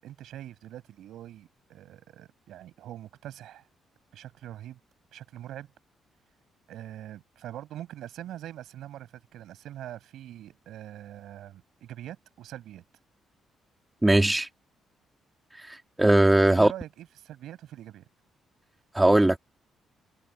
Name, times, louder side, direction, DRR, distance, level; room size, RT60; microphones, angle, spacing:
voice 1, 0.0-3.6 4.1-4.8 5.1-5.7 6.7-12.8 16.5-18.0, right 12 dB, 80° right, 6.5 m, -43 dB
voice 2, 14.0-14.5 15.7-16.7 18.9-19.4, right 1 dB, 10° right, 2.5 m, -20 dB
cardioid pair, 90°, 0 cm